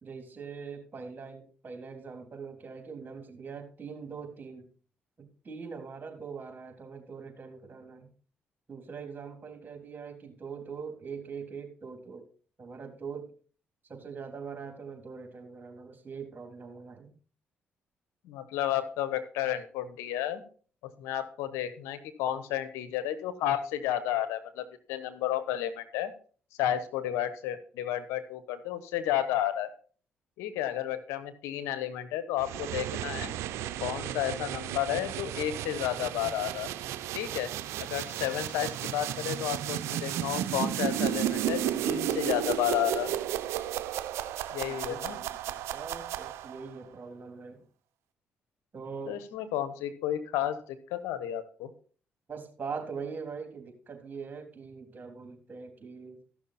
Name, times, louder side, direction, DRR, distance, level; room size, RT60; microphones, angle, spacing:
voice 1, 0.0-4.7 5.2-8.1 8.7-12.3 12.6-13.3 13.9-17.1 44.6-47.6 48.7-49.2 52.3-56.2, right 5 dB, 40° right, 4 dB, 3.5 m, -42 dB
voice 2, 18.2-20.4 20.8-26.1 26.6-29.7 30.4-33.3 33.8-36.7 37.1-37.5 37.8-43.1 44.5-45.2 49.1-51.7, left 11 dB, 90° left, 11 dB, 1.1 m, -32 dB
sound 1, 32.4-46.7, right 11 dB, 85° right, 0.7 m, -33 dB
14.5 x 6.2 x 4.2 m, 0.42 s
supercardioid pair, 60°, 5 cm